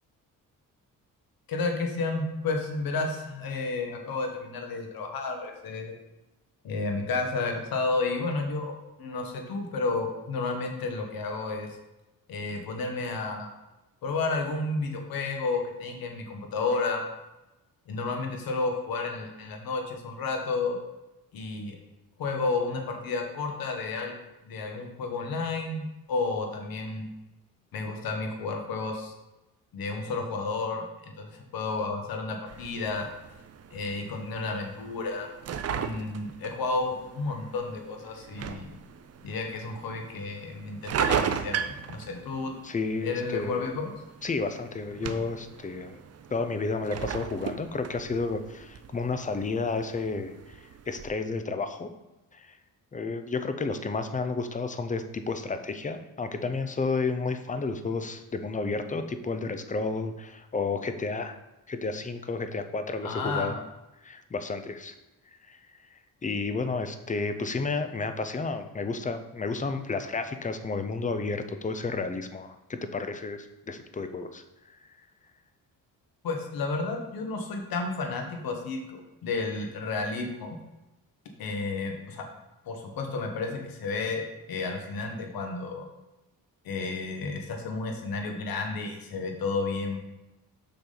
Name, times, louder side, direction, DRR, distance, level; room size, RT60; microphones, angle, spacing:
voice 1, 1.5-5.9 6.6-8.7 9.0-11.7 12.3-13.5 14.0-17.0 17.9-20.8 21.3-21.8 22.2-24.1 24.4-27.1 27.7-29.1 29.7-30.9 31.2-33.1 33.7-35.3 35.7-38.8 39.2-42.5 43.0-43.9 63.0-63.5 76.2-80.6 81.4-82.3 82.6-84.2 84.5-85.8 86.6-90.0, left 3 dB, 75° left, 3 dB, 1.3 m, -31 dB
sound 1, 32.5-51.1, right 7 dB, 45° right, 0.6 m, -37 dB
voice 2, 42.6-43.7 44.2-46.0 46.3-51.9 52.3-52.6 52.9-61.4 61.7-63.6 64.0-64.9 65.5-65.6 65.9-74.4, left 4 dB, 20° left, 9 dB, 0.6 m, -31 dB
6.7 x 6.2 x 3.9 m, 1.0 s
cardioid pair, 110°, 36 cm